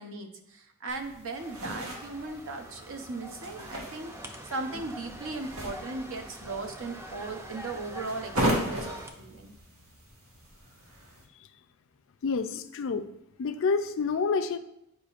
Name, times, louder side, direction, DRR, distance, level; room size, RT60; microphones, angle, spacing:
voice 1, 0.0-4.1 4.5-9.6, right 3 dB, 60° right, 5 dB, 0.7 m, -37 dB
sound 1, 0.9-11.2, right 1 dB, 85° right, 1.5 m, -37 dB
sound 2, 1.4-9.1, equal, 10° right, 0.5 m, -45 dB
voice 2, 12.2-13.1 13.4-14.6, left 4 dB, 60° left, 10 dB, 0.4 m, -28 dB
8.4 x 4.9 x 2.5 m, 0.81 s
head